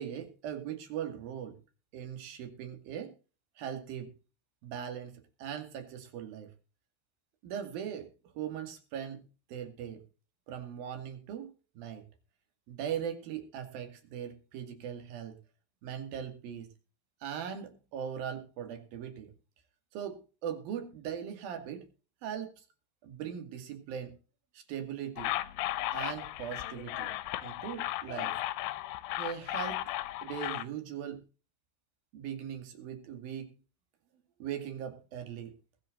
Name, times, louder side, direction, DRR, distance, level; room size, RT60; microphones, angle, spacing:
voice 1, 0.0-1.6 1.9-3.2 3.6-4.1 4.6-6.5 7.4-8.1 8.4-9.2 9.5-10.0 10.5-12.0 12.7-15.4 15.8-16.7 17.2-19.3 19.9-21.9 22.2-22.5 23.0-24.2 24.5-25.3 25.9-27.1 27.4-28.4 29.2-29.8 30.2-31.2 32.1-33.5 34.4-35.5, right 9 dB, 60° right, 6 dB, 3.9 m, -39 dB
sound 1, 25.2-30.6, left 15 dB, 90° left, 3.0 m, -35 dB
20.5 x 8.4 x 3.9 m, 0.34 s
omnidirectional pair, 5.0 m